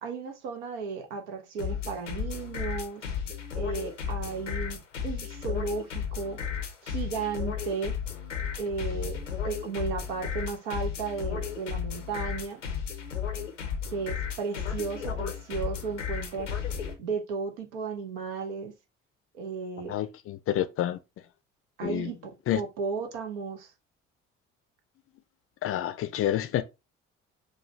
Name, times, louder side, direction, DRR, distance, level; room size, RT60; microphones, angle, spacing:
voice 1, 0.0-3.1 3.5-6.4 6.8-8.0 8.6-12.6 13.9-16.5 17.0-18.7 19.3-20.0 21.8-23.7, right 5 dB, 70° right, 0.8 m, -34 dB
sound 1, 1.6-16.9, left 7 dB, 85° left, 0.6 m, -34 dB
voice 2, 19.9-21.0 21.8-22.1 22.5-22.6 25.6-26.6, left 12 dB, 40° left, 0.5 m, -28 dB
4.8 x 2.2 x 2.8 m
figure-of-eight pair, 50°, 36 cm